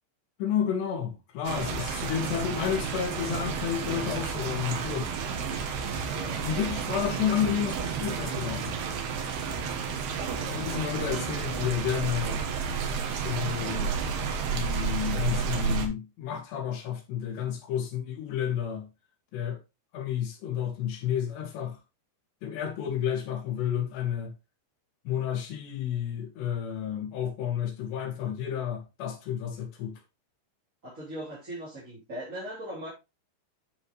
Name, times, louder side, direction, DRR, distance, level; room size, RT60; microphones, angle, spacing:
voice 1, 0.4-5.1 6.4-8.8 10.4-12.4 13.1-13.9 14.5-18.9 19.3-19.6 19.9-21.8 22.4-24.3 25.1-30.0, left 9 dB, 80° left, 4.3 m, -31 dB
sound 1, 1.5-15.9, right 6 dB, 70° right, 3.4 m, -31 dB
voice 2, 6.1-6.4 10.1-10.7 30.8-32.9, right 1 dB, 20° right, 3.1 m, -40 dB
10.5 x 6.8 x 3.2 m
omnidirectional pair, 4.8 m